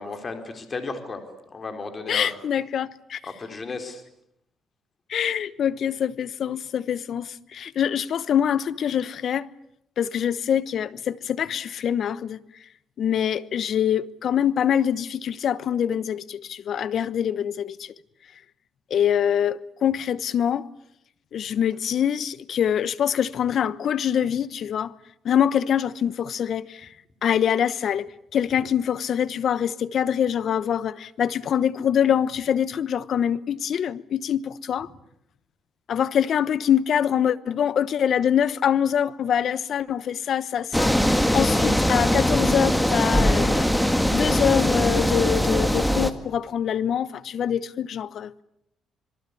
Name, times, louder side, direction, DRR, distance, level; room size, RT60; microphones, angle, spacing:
voice 1, 0.0-2.3 3.2-4.0, left 3 dB, 35° left, 4.5 m, -34 dB
voice 2, 2.1-3.2 5.1-9.5 10.0-12.4 13.0-17.9 18.9-20.7 21.3-24.9 25.2-26.9 27.2-34.9 35.9-43.7 44.1-48.3, left 9 dB, 60° left, 1.0 m, -24 dB
sound 1, 40.7-46.1, equal, 5° left, 2.0 m, -21 dB
26.5 x 22.5 x 8.5 m
cardioid pair, 90°, 0 cm